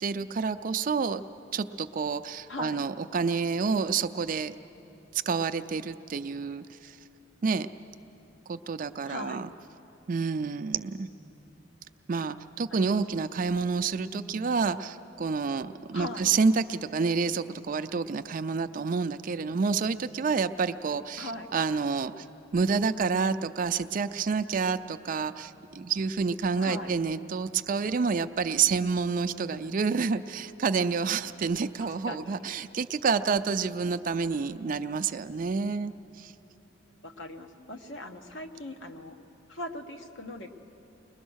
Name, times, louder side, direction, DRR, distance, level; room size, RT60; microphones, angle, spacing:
voice 1, 0.0-1.2 1.5-4.5 5.1-7.0 7.4-7.7 8.5-9.5 10.1-11.1 12.1-22.3 22.5-36.3, right 5 dB, 45° right, 10 dB, 0.4 m, -28 dB
voice 2, 2.5-2.8 9.1-9.4 12.7-13.2 15.9-16.3 21.2-21.5 26.6-26.9 32.0-32.4 37.0-39.2 39.5-40.5, left 1 dB, 70° left, 5 dB, 1.2 m, -40 dB
21.5 x 20.5 x 6.3 m, 2.9 s
head